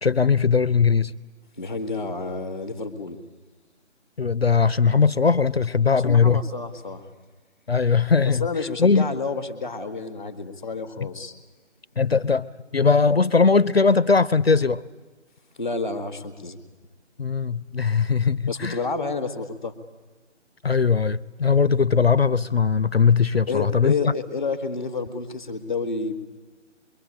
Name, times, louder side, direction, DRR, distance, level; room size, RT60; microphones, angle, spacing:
voice 1, 0.0-1.1 4.2-6.4 7.7-8.4 8.8-9.1 12.0-12.5 12.7-14.8 17.2-18.8 20.6-24.0, left 5 dB, 55° left, 0.7 m, -19 dB
voice 2, 1.6-3.2 5.9-7.1 8.2-11.3 15.6-16.6 18.5-19.7 23.5-26.1, left 4 dB, 5° left, 0.9 m, -30 dB
25.5 x 22.5 x 8.7 m
figure-of-eight pair, 155°, 36 cm